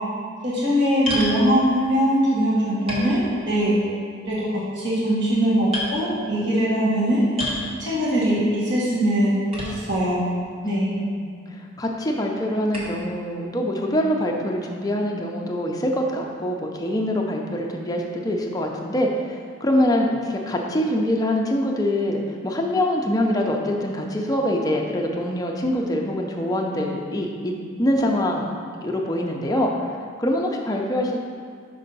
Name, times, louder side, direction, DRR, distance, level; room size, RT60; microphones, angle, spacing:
voice 1, 0.4-3.8 4.3-7.2 7.8-10.2 10.7-10.9, equal, 60° right, -7 dB, 1.4 m, -21 dB
sound 1, 1.1-1.4 2.3-2.4 2.9-3.7 4.1-4.5 5.1-5.3 5.7-5.9 7.4-7.7 9.5-10.1 10.8-10.9 12.7-13.0, left 1 dB, 30° right, 1.2 m, -30 dB
voice 2, 10.6-19.2 19.6-27.5 27.8-28.5 28.8-29.7 30.2-31.2, left 1 dB, 20° left, 0 dB, 0.5 m, -24 dB
5.5 x 5.4 x 4.0 m, 2.1 s
head